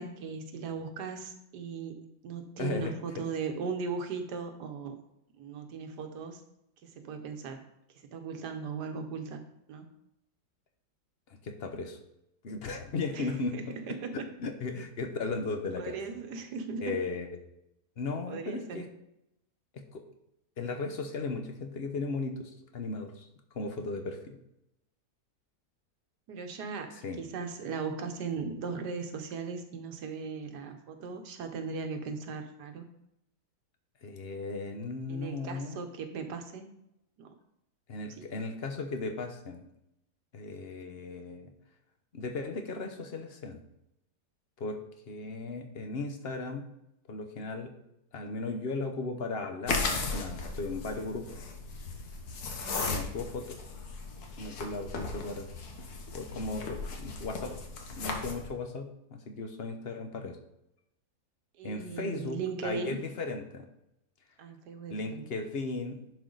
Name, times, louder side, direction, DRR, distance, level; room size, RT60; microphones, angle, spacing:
voice 1, 0.0-5.0 5.3-6.4 6.8-7.6 7.9-9.4 9.7-9.9 13.1-14.2 15.8-16.9 18.3-18.9 26.3-26.9 27.2-32.9 35.1-36.7 37.2-37.3 38.2-38.3 52.6-52.9 61.6-63.0 64.4-65.3, right 5 dB, 80° right, 6 dB, 1.4 m, -38 dB
voice 2, 2.6-2.9 11.4-12.0 12.4-13.6 14.4-16.0 16.8-17.3 18.0-18.8 19.7-20.0 20.6-23.3 23.5-24.4 27.0-27.2 34.0-35.8 37.9-39.7 40.3-41.5 42.1-43.6 44.6-46.6 47.1-47.7 48.1-51.4 52.8-53.6 54.4-55.5 56.1-57.6 57.9-60.4 61.6-63.7 64.9-66.0, left 3 dB, 45° left, 5 dB, 0.9 m, -36 dB
sound 1, 49.7-58.5, left 3 dB, 65° left, 1.6 m, -36 dB
10.5 x 4.6 x 3.9 m, 0.83 s
omnidirectional pair, 1.8 m